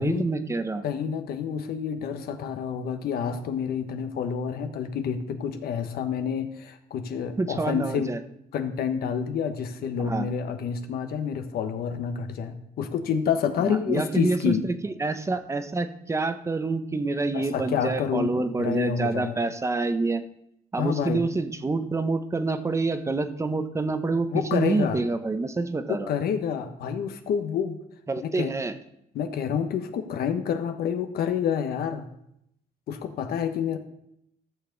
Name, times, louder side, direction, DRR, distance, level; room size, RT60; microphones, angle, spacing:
voice 1, 0.0-0.8 7.4-8.2 10.0-10.3 13.6-20.2 20.7-26.1 28.1-28.7, right 3 dB, 15° right, 9 dB, 0.8 m, -27 dB
voice 2, 0.8-8.1 8.5-14.6 17.3-19.4 20.8-21.2 24.3-25.0 25.9-27.8 28.2-28.5 29.1-32.1 32.9-33.8, left 7 dB, 65° left, 7 dB, 1.1 m, -28 dB
14.0 x 6.7 x 4.0 m, 0.78 s
cardioid pair, 110°, 17 cm